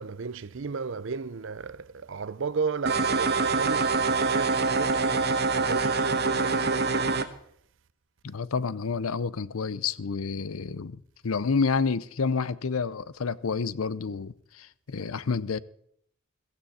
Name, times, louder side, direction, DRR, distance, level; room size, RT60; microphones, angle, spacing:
voice 1, 0.0-7.3, right 5 dB, 65° right, 0.6 m, -34 dB
sound 1, 2.9-7.3, right 4 dB, 50° right, 1.1 m, -25 dB
voice 2, 8.2-15.6, left 5 dB, 90° left, 0.6 m, -29 dB
15.5 x 15.5 x 4.2 m
head